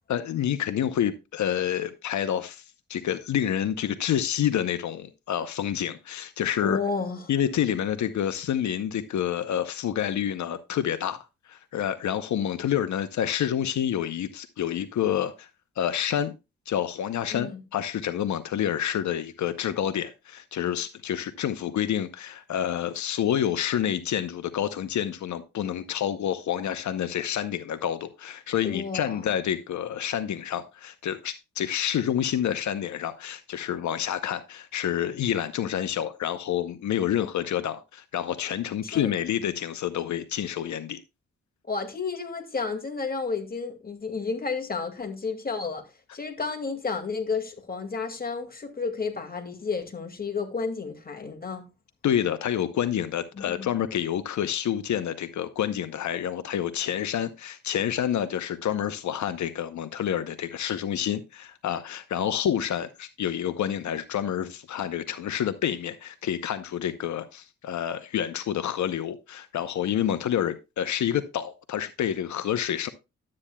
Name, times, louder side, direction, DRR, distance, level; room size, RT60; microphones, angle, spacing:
voice 1, 0.1-2.6 2.9-6.8 7.3-15.5 15.8-16.3 16.7-41.0 52.0-72.9, left 10 dB, 75° left, 0.7 m, -28 dB
voice 2, 6.6-7.3 17.3-17.6 28.6-29.2 38.8-39.1 41.7-45.8 46.1-51.7 53.3-53.8, left 4 dB, 30° left, 2.1 m, -31 dB
11.5 x 8.6 x 2.2 m
cardioid pair, 75°, 29 cm